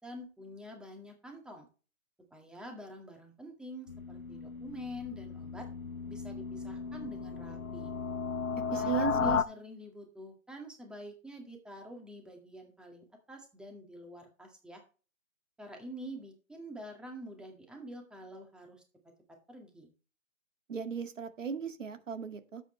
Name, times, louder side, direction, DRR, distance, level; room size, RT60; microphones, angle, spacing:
voice 1, 0.0-1.7 2.3-5.7 6.1-7.9 8.7-14.8 15.6-18.8 19.5-19.9, equal, ahead, 3 dB, 1.9 m, -47 dB
sound 1, 3.9-9.4, left 6 dB, 90° left, 1.0 m, -35 dB
voice 2, 8.7-9.4 20.7-22.6, right 7 dB, 65° right, 9 dB, 2.0 m, -36 dB
12.0 x 8.2 x 3.2 m, 0.35 s
figure-of-eight pair, 140°, 41 cm